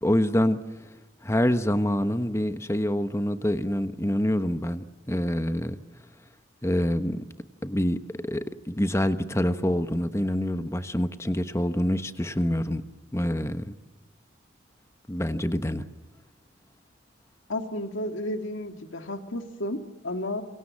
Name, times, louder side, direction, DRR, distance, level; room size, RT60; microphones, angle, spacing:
voice 1, 0.0-0.6 1.2-5.8 6.6-7.2 7.6-8.0 8.2-12.8 13.1-13.7 15.1-15.8, equal, 15° left, 10 dB, 1.1 m, -26 dB
voice 2, 17.5-20.4, left 1 dB, 85° left, 7 dB, 2.2 m, -32 dB
27.5 x 24.0 x 7.5 m, 1.3 s
head